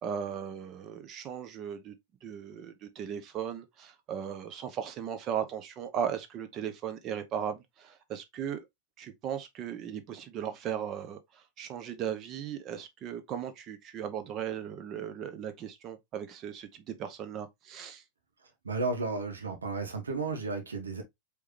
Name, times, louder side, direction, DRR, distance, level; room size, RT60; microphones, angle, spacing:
voice 1, 0.0-1.9 2.2-8.7 9.0-18.0, right 8 dB, 35° right, 0.9 m, -37 dB
voice 2, 18.6-21.0, right 3 dB, 75° right, 1.2 m, -33 dB
4.8 x 3.4 x 2.9 m
figure-of-eight pair, 90°, 0 cm